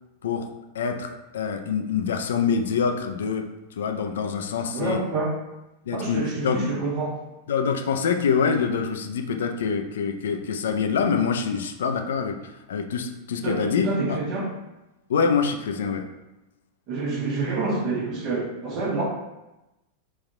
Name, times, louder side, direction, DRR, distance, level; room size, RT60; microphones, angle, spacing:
voice 1, 0.7-3.5 3.8-5.0 5.9-6.7 7.5-14.2 15.1-16.1, left 6 dB, 60° left, 5 dB, 0.4 m, -25 dB
voice 2, 4.7-5.4 5.9-7.2 13.4-14.5 16.9-19.0, right 3 dB, 40° right, -1 dB, 1.1 m, -27 dB
4.1 x 2.5 x 4.2 m, 0.97 s
figure-of-eight pair, 90°, 0 cm